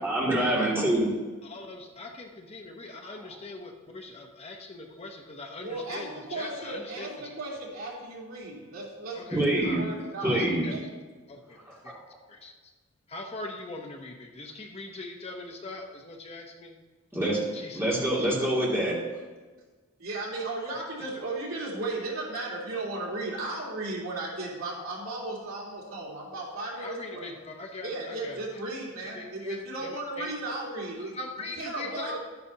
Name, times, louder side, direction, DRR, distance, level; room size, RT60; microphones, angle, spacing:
voice 1, 0.0-1.1 9.3-9.8 10.2-10.6 11.6-12.0 17.1-17.4 17.7-18.9, right 1 dB, 10° right, -6 dB, 2.5 m, -25 dB
voice 2, 1.4-7.4 9.2-9.9 10.2-10.7 11.3-11.6 11.8-11.9 12.3-12.5 13.1-16.8 17.5-18.0 26.8-28.4 29.0-30.3 31.1-32.2, left 2 dB, 30° left, 2 dB, 0.8 m, -41 dB
voice 3, 5.6-10.4 10.7-10.8 11.7-11.8 20.0-27.3 27.8-31.2 31.6-32.2, right 2 dB, 80° right, -5 dB, 3.3 m, -35 dB
12.0 x 9.8 x 2.8 m, 1.3 s
head